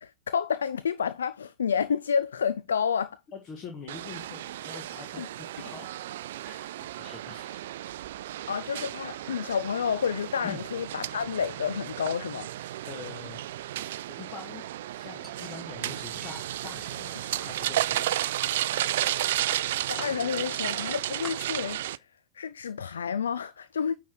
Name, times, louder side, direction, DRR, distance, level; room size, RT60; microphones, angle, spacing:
voice 1, 0.0-3.2 5.2-5.3 8.5-12.5 19.9-21.8 22.4-23.9, left 7 dB, 70° left, 0.4 m, -29 dB
voice 2, 3.3-5.9 6.4-6.7 7.0-7.6 10.4-10.6 12.8-13.4 14.1-14.6 14.9-18.2, left 6 dB, 30° left, 1.5 m, -44 dB
sound 1, 3.9-22.0, right 13 dB, 55° right, 0.3 m, -33 dB
Chink clink, 15.2-16.5 16.8-17.6 18.1-19.2 19.5-20.1 20.7-20.8 21.2-21.3, right 1 dB, ahead, 2.0 m, -48 dB
9.3 x 3.9 x 4.6 m
figure-of-eight pair, 90°, 0 cm